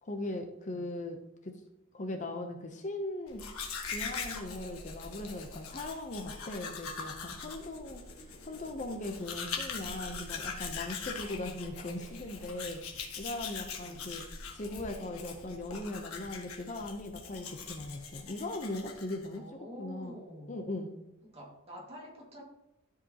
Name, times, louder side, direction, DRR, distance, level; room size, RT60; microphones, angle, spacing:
voice 1, 0.0-1.6 1.9-3.4 3.9-8.0 8.4-14.2 14.5-19.5 19.8-20.9, left 2 dB, 35° left, 4 dB, 0.7 m, -39 dB
Domestic sounds home sounds, 3.3-19.4, left 5 dB, 80° left, 1.3 m, -42 dB
voice 2, 13.6-14.0 19.3-20.6 21.2-22.4, equal, 25° right, -2 dB, 2.0 m, -48 dB
13.0 x 4.9 x 2.9 m, 0.91 s
head